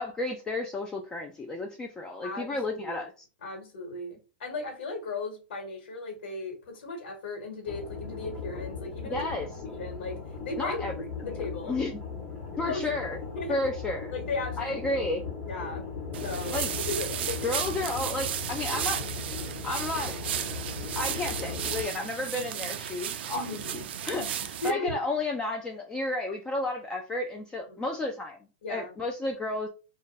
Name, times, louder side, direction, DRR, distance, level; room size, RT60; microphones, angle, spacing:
voice 1, 0.0-3.1 9.1-9.5 10.6-10.9 11.7-11.9 12.6-13.2 13.5-14.1 14.6-15.2 16.5-16.7 17.4-19.0 19.6-20.2 21.0-23.4 24.0-28.4 28.7-29.7, left 2 dB, 15° left, 2 dB, 0.3 m, -32 dB
voice 2, 2.2-2.9 3.4-9.3 9.8-11.8 12.6-12.9 13.3-13.6 14.1-14.9 15.5-15.9 16.2-17.5 23.3-23.9 24.1-24.3 24.6-25.0 27.7-27.8 28.6-28.9, left 3 dB, 75° left, 2 dB, 1.4 m, -36 dB
sound 1, 7.7-21.8, left 5 dB, 30° left, 1.2 m, -38 dB
sound 2, 16.1-24.7, right 9 dB, 75° right, 0.4 m, -34 dB
2.6 x 2.2 x 3.8 m, 0.34 s
supercardioid pair, 150°, 6 cm